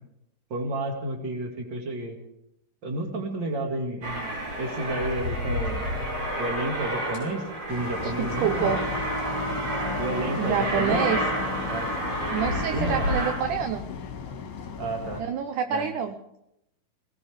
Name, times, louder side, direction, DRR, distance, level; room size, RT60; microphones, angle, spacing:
voice 1, 0.5-2.2 2.8-5.9 6.4-7.4 7.7-8.8 10.0-11.1 11.7-11.9 12.5-13.1 14.8-15.2 15.7-15.9, right 2 dB, 35° right, 3 dB, 2.2 m, -31 dB
Aircraft, 4.0-13.3, equal, 50° right, 8.9 m, -30 dB
sound 1, 7.7-15.2, left 6 dB, 65° left, 3.0 m, -36 dB
voice 2, 8.0-8.8 10.4-11.2 12.3-13.8 15.2-16.2, right 8 dB, 75° right, 7 dB, 1.9 m, -27 dB
22.0 x 18.0 x 3.5 m, 0.83 s
omnidirectional pair, 4.5 m